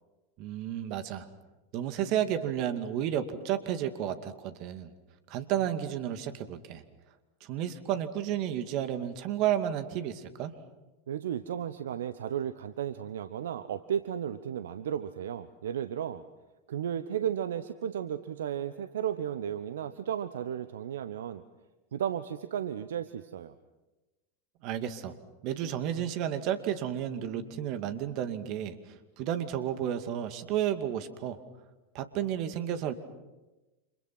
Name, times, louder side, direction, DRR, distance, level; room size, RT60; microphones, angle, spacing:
voice 1, 0.4-1.3 1.7-4.9 5.3-6.8 7.4-10.5 24.6-25.2 25.4-28.7 29.2-31.4 31.9-32.9, right 10 dB, 50° right, 9 dB, 2.4 m, -32 dB
voice 2, 11.1-16.2 16.7-21.4 21.9-23.5, right 9 dB, 70° right, 12 dB, 1.0 m, -34 dB
30.0 x 27.5 x 6.1 m, 1.1 s
figure-of-eight pair, 85°, 0 cm